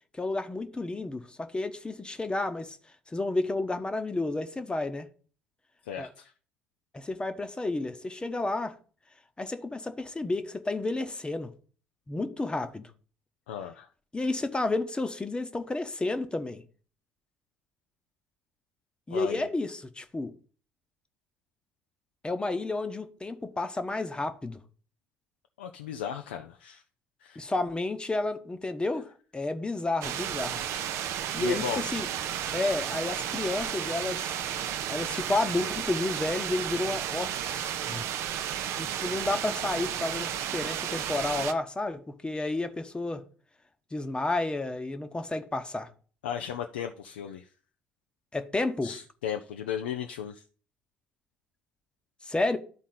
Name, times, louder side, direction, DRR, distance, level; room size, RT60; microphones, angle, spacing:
voice 1, 0.1-2.8 3.1-5.1 6.0-6.1 6.9-8.8 9.4-11.5 12.1-12.9 14.1-16.6 19.1-20.3 22.2-24.6 27.4-30.6 31.3-32.1 32.5-34.3 34.9-38.1 38.7-43.2 43.9-45.9 48.3-48.9 52.2-52.6, left 2 dB, 15° left, 0.9 m, -31 dB
voice 2, 5.9-6.3 13.5-13.9 19.1-19.5 25.6-26.8 27.2-27.5 31.4-32.0 34.5-34.8 46.2-47.5 48.8-50.4, left 9 dB, 75° left, 0.5 m, -36 dB
sound 1, 30.0-41.5, right 10 dB, 55° right, 0.6 m, -33 dB
12.0 x 4.1 x 3.9 m
figure-of-eight pair, 55°, 6 cm